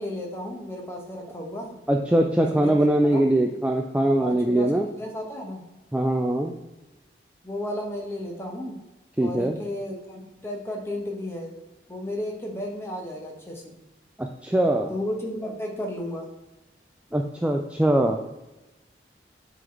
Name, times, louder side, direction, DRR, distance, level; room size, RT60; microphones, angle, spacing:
voice 1, 0.0-1.8 2.5-2.7 3.0-3.3 4.2-5.6 7.4-8.8 9.2-11.5 11.9-13.7 14.9-16.3, left 1 dB, 15° left, 0 dB, 1.1 m, -33 dB
voice 2, 1.9-4.9 5.9-6.5 9.2-9.6 14.2-14.9 17.1-18.2, right 1 dB, 5° right, 2 dB, 0.3 m, -22 dB
7.6 x 3.9 x 3.2 m, 1.0 s
head